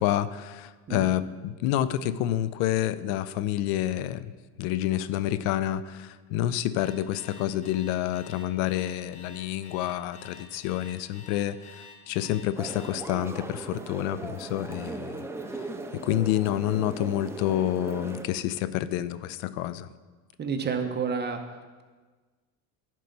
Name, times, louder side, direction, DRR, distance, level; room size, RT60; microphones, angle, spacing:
voice 1, 0.0-4.3 4.6-15.2 15.5-15.6 15.9-19.9, left 12 dB, 80° left, 15 dB, 0.5 m, -28 dB
Alarm, 6.8-12.9, left 5 dB, 15° left, 1.6 m, -49 dB
sound 1, 12.5-18.3, right 2 dB, 5° right, 0.4 m, -38 dB
voice 2, 20.4-21.8, right 5 dB, 25° right, 5 dB, 0.8 m, -30 dB
10.5 x 4.5 x 5.3 m, 1.4 s
supercardioid pair, 115°, 41 cm